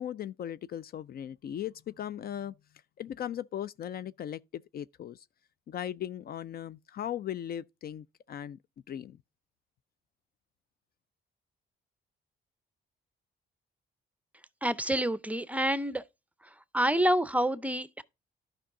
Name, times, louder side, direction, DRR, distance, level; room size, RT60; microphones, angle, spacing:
voice 1, 0.0-2.5 3.0-5.2 5.7-8.6 8.9-9.2, left 10 dB, 50° left, 0.4 m, -38 dB
voice 2, 14.6-16.0 16.7-18.0, right 1 dB, 5° right, 0.6 m, -27 dB
11.0 x 5.4 x 3.7 m
cardioid pair, 90°, 20 cm